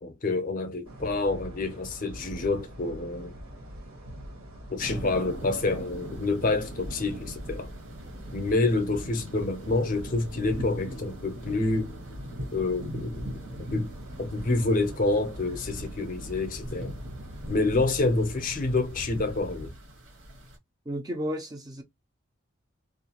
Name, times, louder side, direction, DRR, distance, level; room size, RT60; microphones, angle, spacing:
voice 1, 0.0-3.4 4.7-7.7 8.3-11.9 12.5-13.3 13.6-13.9 14.2-17.0 17.5-19.7, left 3 dB, 40° left, 0.5 m, -28 dB
sound 1, 0.8-19.7, equal, 75° right, 1.4 m, -44 dB
sound 2, 4.8-20.6, equal, 55° right, 1.0 m, -40 dB
voice 2, 20.9-21.8, equal, 20° right, 0.4 m, -33 dB
2.4 x 2.2 x 2.8 m
head